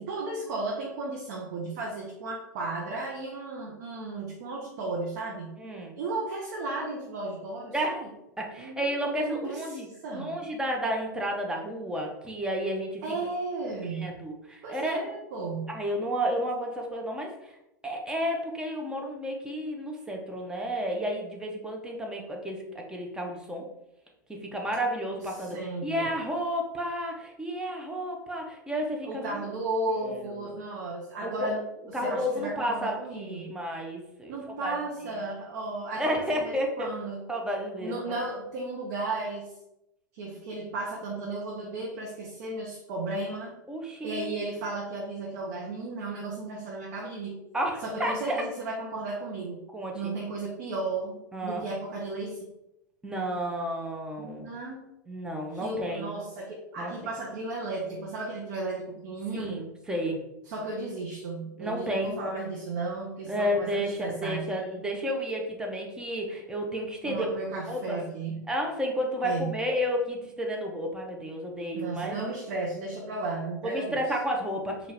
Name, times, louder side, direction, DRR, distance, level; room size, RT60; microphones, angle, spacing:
voice 1, 0.0-5.6 6.0-8.0 8.6-10.4 13.0-14.3 14.6-15.8 25.4-26.1 29.0-31.6 31.9-33.6 34.3-37.2 37.8-39.5 40.1-43.5 44.0-47.4 47.8-49.6 49.9-52.4 54.2-54.8 55.5-59.6 60.5-64.8 67.0-68.5 69.2-69.6 71.7-74.0, right 2 dB, 55° right, -2 dB, 0.8 m, -34 dB
voice 2, 5.6-5.9 7.7-8.1 8.4-9.9 10.1-13.0 13.9-15.0 15.7-17.5 17.8-23.6 24.3-29.4 30.0-30.5 31.2-31.5 31.9-34.4 34.6-34.7 36.0-36.9 37.3-38.0 43.7-44.4 47.5-48.4 49.7-50.1 51.3-51.6 53.0-54.5 55.1-56.1 56.8-56.9 59.4-60.2 61.6-62.2 63.3-67.3 67.7-68.0 68.5-72.2 73.6-74.9, equal, 10° right, 1 dB, 0.8 m, -31 dB
4.5 x 2.5 x 3.3 m, 0.87 s
figure-of-eight pair, 95°, 10 cm